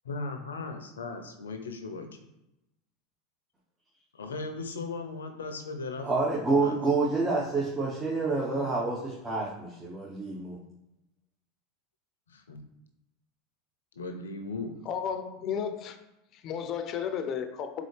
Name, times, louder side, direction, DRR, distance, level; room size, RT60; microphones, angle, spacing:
voice 1, 0.0-2.1 4.1-6.1 6.6-6.8 12.3-12.6 14.0-14.8, left 3 dB, 90° left, 6 dB, 0.5 m, -37 dB
voice 2, 6.0-10.6, right 3 dB, 20° right, -5 dB, 1.0 m, -28 dB
voice 3, 14.9-16.0 16.3-17.9, left 7 dB, 45° left, 9 dB, 0.5 m, -33 dB
4.0 x 3.7 x 3.2 m, 0.90 s
hypercardioid pair, 90°, 0 cm